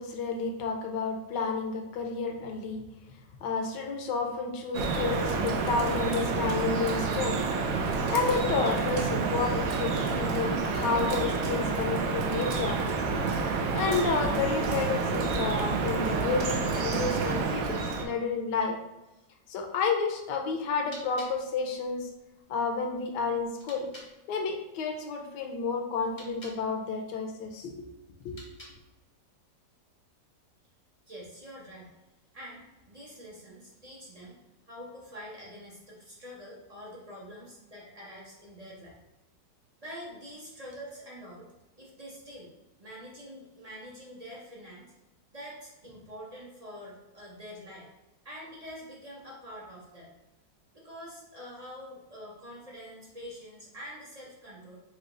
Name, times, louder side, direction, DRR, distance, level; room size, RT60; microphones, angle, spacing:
voice 1, 0.0-2.8 3.4-7.4 7.9-12.8 13.5-18.8 19.5-22.1 22.5-23.8 24.3-27.7 28.2-28.4, left 4 dB, 75° left, 3 dB, 1.3 m, -30 dB
Drip, 4.7-18.1, right 4 dB, 70° right, 0.8 m, -29 dB
sound 1, 20.8-24.1 26.0-26.6 28.2-29.0, left 1 dB, 35° left, 0.4 m, -51 dB
voice 2, 31.1-32.0 32.3-34.4 34.7-39.0 39.8-41.5 41.8-42.5 42.8-44.9 45.3-47.9 48.2-50.1 50.7-54.8, equal, 45° right, -5 dB, 0.5 m, -45 dB
4.9 x 2.3 x 3.8 m, 1.0 s
omnidirectional pair, 2.0 m